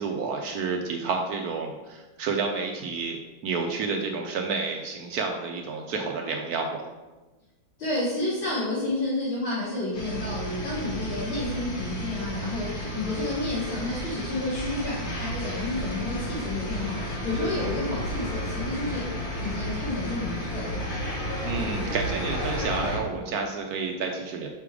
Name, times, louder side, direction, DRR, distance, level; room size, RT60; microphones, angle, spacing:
voice 1, 0.0-6.9 21.4-24.5, right 4 dB, 75° right, 2 dB, 0.8 m, -30 dB
voice 2, 7.8-20.8, left 2 dB, 75° left, -12 dB, 3.0 m, -30 dB
sound 1, 9.9-23.0, equal, 40° left, 1.3 m, -32 dB
5.8 x 3.5 x 4.7 m, 1.1 s
omnidirectional pair, 2.2 m